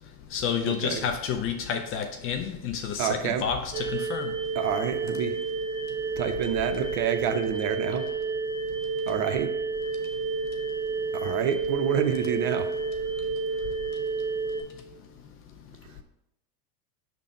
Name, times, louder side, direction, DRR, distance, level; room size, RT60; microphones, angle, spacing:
voice 1, 0.3-4.3, left 7 dB, 30° left, 6 dB, 0.4 m, -30 dB
voice 2, 3.0-3.4 4.6-5.3 6.2-8.1 9.1-9.5 11.1-12.7, right 8 dB, 60° right, 8 dB, 0.8 m, -28 dB
sound 1, 3.7-14.6, right 4 dB, 75° right, 2.2 m, -30 dB
5.8 x 3.6 x 5.1 m, 0.87 s
hypercardioid pair, 105°, 48 cm